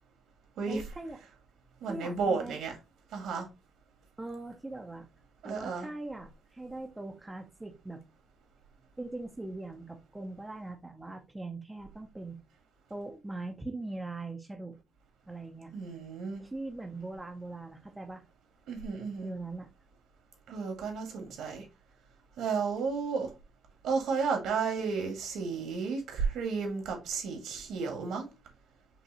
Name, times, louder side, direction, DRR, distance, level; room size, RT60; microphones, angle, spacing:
voice 1, 0.6-1.2 1.8-2.6 4.2-5.1 5.4-8.0 9.0-12.4 12.9-14.8 15.3-15.7 16.4-18.2 19.2-19.7, right 2 dB, 10° right, 0.6 m, -41 dB
voice 2, 1.8-2.7 3.1-3.5 5.4-5.9 15.7-16.4 18.7-19.3 20.5-21.7 22.4-23.3 23.8-28.3, right 5 dB, 80° right, 1.7 m, -32 dB
5.4 x 3.1 x 2.8 m
cardioid pair, 160°, 0 cm